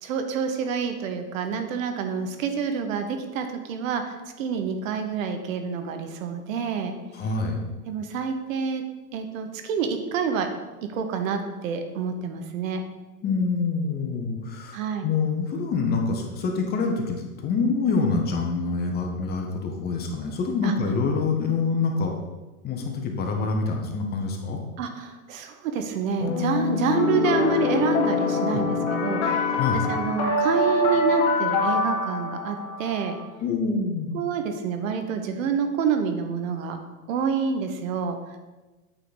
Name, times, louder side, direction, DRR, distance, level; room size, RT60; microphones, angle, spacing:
voice 1, 0.0-7.0 7.9-8.8 9.1-10.5 10.9-12.8 14.7-15.1 20.6-20.7 24.8-29.4 29.9-33.2 34.1-36.8 37.1-38.2, right 6 dB, 60° right, 6 dB, 1.1 m, -28 dB
voice 2, 7.1-7.6 13.2-22.2 22.6-24.6 29.5-29.8 33.4-34.1, left 4 dB, 20° left, 3 dB, 0.9 m, -26 dB
sound 1, 26.2-33.2, left 3 dB, 55° left, 1.6 m, -24 dB
8.4 x 3.9 x 5.0 m, 1.2 s
hypercardioid pair, 135°, 44 cm